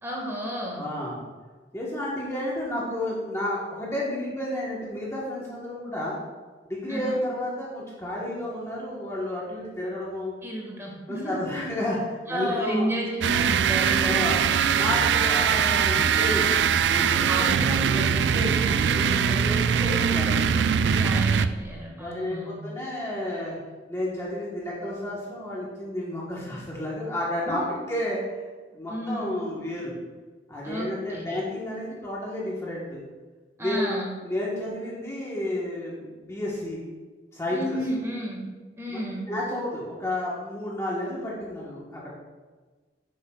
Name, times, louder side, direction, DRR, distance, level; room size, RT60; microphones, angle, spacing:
voice 1, 0.0-0.8 6.9-7.2 10.4-11.4 12.3-14.0 17.3-18.0 20.9-22.6 27.5-27.8 28.9-29.5 30.6-31.3 33.6-34.1 37.5-38.4 38.8-39.3, right 1 dB, 15° right, -2 dB, 1.7 m, -32 dB
voice 2, 0.7-1.2 1.7-6.2 6.7-10.3 11.1-12.9 14.0-14.4 14.7-16.6 16.9-20.7 22.0-23.6 23.9-27.6 27.9-28.4 28.7-30.0 30.5-33.0 33.6-33.9 34.2-36.8 37.3-38.0 38.9-39.0 39.3-42.1, left 1 dB, 15° left, -5 dB, 1.2 m, -31 dB
sound 1, 13.2-21.7, right 7 dB, 80° right, 0.3 m, -22 dB
10.5 x 7.6 x 2.4 m, 1.4 s
head